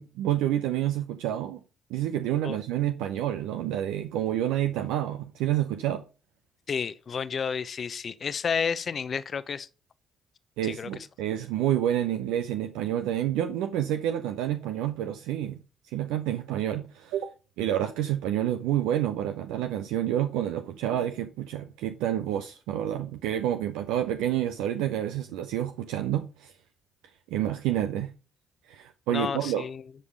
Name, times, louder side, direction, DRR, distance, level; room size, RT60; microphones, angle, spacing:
voice 1, 0.0-1.6 1.9-6.0 10.6-15.6 15.9-17.3 17.6-26.5 27.3-28.1 28.7-29.6, right 11 dB, 80° right, 0.6 m, -28 dB
voice 2, 6.7-9.7 10.6-10.9 29.1-29.8, left 6 dB, 50° left, 0.7 m, -31 dB
10.0 x 5.4 x 5.1 m
hypercardioid pair, 45°, 0 cm